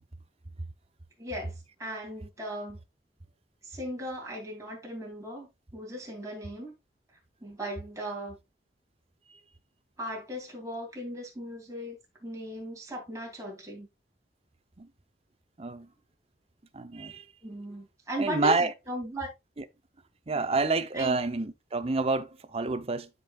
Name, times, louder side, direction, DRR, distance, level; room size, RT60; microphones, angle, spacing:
voice 1, 1.2-2.8 3.6-6.7 7.4-8.4 10.0-13.9 17.4-19.3 20.9-21.2, equal, 20° right, 2.9 m, -37 dB
voice 2, 15.6-15.9 16.7-17.3 18.2-18.7 20.3-23.1, right 3 dB, 35° right, 0.8 m, -28 dB
12.5 x 5.4 x 2.4 m
head